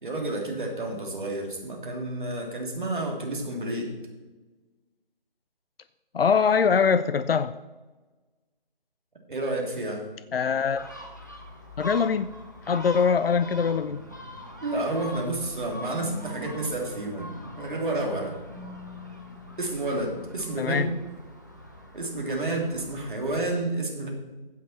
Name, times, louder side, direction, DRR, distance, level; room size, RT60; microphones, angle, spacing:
voice 1, 0.0-3.9 9.3-10.0 14.6-17.3 17.6-18.4 19.6-20.9 21.9-24.1, right 2 dB, 55° right, 0 dB, 2.9 m, -30 dB
voice 2, 6.1-7.5 10.3-10.9 11.8-12.3 12.7-14.0 20.6-20.9, left 6 dB, 75° left, 12 dB, 0.6 m, -23 dB
Gull seagull, 10.7-23.5, left 1 dB, 20° left, 0.7 m, -44 dB
sound 1, 13.2-20.5, left 2 dB, 5° right, 2.6 m, -44 dB
15.5 x 5.9 x 4.4 m, 1.2 s
figure-of-eight pair, 175°, 29 cm